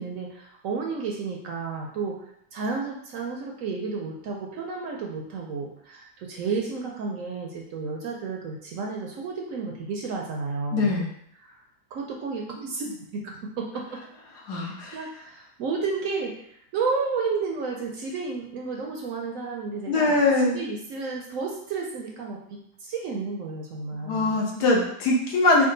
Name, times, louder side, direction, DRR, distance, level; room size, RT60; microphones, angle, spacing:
voice 1, 0.0-11.0 11.4-11.6 11.9-14.0 14.6-20.2 20.5-24.4, right 4 dB, 70° right, 0 dB, 0.8 m, -32 dB
voice 2, 10.7-11.1 14.5-15.0 19.9-20.6 23.9-25.7, left 2 dB, 80° left, -2 dB, 1.4 m, -22 dB
3.7 x 2.2 x 3.8 m, 0.69 s
omnidirectional pair, 1.7 m